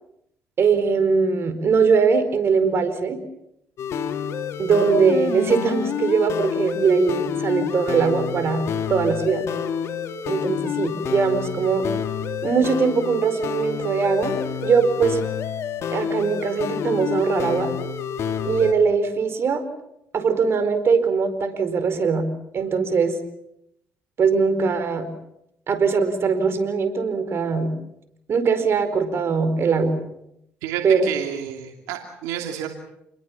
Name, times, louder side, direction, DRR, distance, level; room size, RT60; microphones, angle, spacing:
voice 1, 0.6-3.2 4.6-8.6 8.9-9.4 10.3-11.9 12.4-15.2 15.9-17.7 18.4-19.6 20.1-22.3 22.5-23.1 24.2-25.1 25.7-27.7 28.3-30.0 30.8-31.1, right 5 dB, 50° right, 9 dB, 4.6 m, -21 dB
sound 1, 3.8-18.7, left 7 dB, 65° left, 2.5 m, -28 dB
voice 2, 30.6-32.7, right 10 dB, 90° right, 4 dB, 2.8 m, -30 dB
29.0 x 21.5 x 7.3 m, 0.80 s
supercardioid pair, 75°, 5 cm